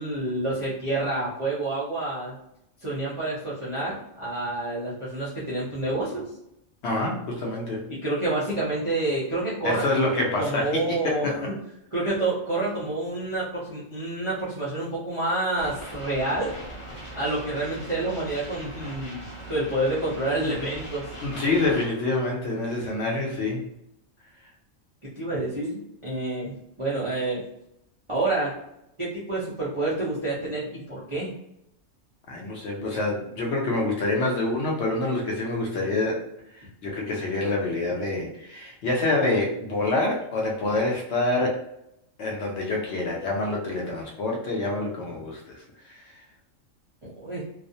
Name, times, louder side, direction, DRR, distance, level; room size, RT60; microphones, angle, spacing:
voice 1, 0.0-2.3 2.8-6.3 7.9-9.9 10.4-11.4 11.9-16.5 17.1-21.1 25.0-27.4 28.1-28.5 29.0-31.3 47.0-47.4, right 2 dB, 40° right, -9 dB, 0.4 m, -28 dB
voice 2, 6.8-7.8 9.6-11.4 21.2-23.7 32.3-36.2 36.5-41.6 42.2-46.0, left 2 dB, 65° left, -1 dB, 0.8 m, -27 dB
sound 1, 15.6-21.9, right 1 dB, 30° left, 0.6 m, -40 dB
2.4 x 2.0 x 2.6 m, 0.79 s
omnidirectional pair, 1.4 m